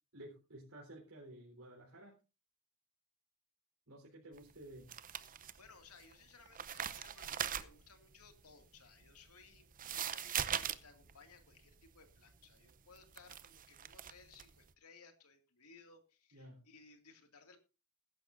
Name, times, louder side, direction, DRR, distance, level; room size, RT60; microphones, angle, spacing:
voice 1, 0.1-2.1 3.9-4.9 16.3-16.6, right 1 dB, 70° right, -4 dB, 4.1 m, -53 dB
sound 1, 4.4-6.1 6.4-14.6, right 9 dB, 40° right, 0.7 m, -41 dB
voice 2, 5.6-17.6, left 4 dB, 85° left, 6 dB, 2.3 m, -61 dB
21.0 x 11.0 x 2.6 m, 0.29 s
head